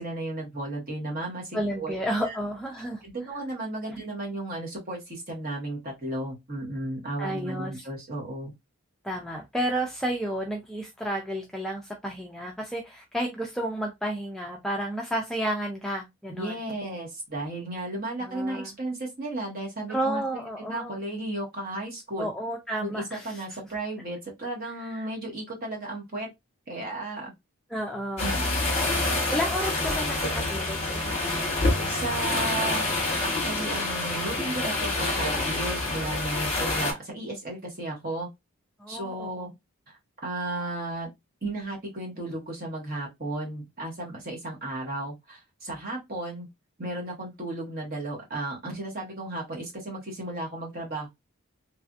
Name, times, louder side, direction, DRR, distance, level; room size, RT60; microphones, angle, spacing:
voice 1, 0.0-2.0 2.2-2.4 3.0-8.5 16.3-20.2 20.7-22.3 22.8-26.3 26.7-27.3 28.2-28.6 31.9-32.9 33.2-38.3 38.9-39.5 39.9-41.1 41.4-46.5 46.8-51.1, right 2 dB, 40° right, 1.3 m, -34 dB
voice 2, 1.5-3.0 3.9-4.0 7.2-7.7 9.0-16.6 18.2-18.7 19.9-21.0 22.2-23.4 24.8-25.1 27.7-28.3 29.3-31.6 38.8-39.5, equal, ahead, 0.3 m, -32 dB
sound 1, 28.2-36.9, left 2 dB, 30° left, 1.0 m, -27 dB
3.2 x 2.5 x 2.4 m
head